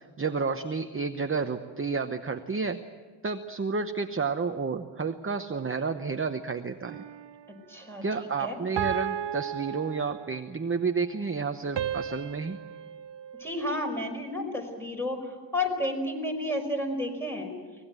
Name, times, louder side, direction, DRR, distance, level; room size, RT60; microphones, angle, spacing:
voice 1, 0.0-2.8 3.2-7.0 8.0-12.6, right 4 dB, 25° right, 6 dB, 1.0 m, -31 dB
sound 1, 6.8-7.5 8.8-10.6 11.8-14.2, right 9 dB, 65° right, 0.9 m, -35 dB
voice 2, 7.7-8.0 8.4-8.6 13.4-17.5, left 1 dB, 5° left, 2 dB, 5.2 m, -31 dB
24.0 x 19.5 x 9.0 m, 1.4 s
wide cardioid pair, 125°, 46 cm